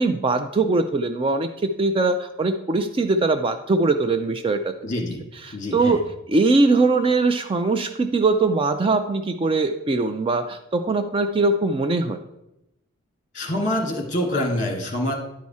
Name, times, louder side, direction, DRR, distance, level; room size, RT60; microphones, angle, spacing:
voice 1, 0.0-4.7 5.4-12.2, right 3 dB, 25° right, 8 dB, 0.3 m, -21 dB
voice 2, 4.8-5.2 5.5-6.0 13.3-15.1, left 1 dB, 35° left, 2 dB, 1.7 m, -25 dB
10.5 x 4.7 x 4.2 m, 0.88 s
head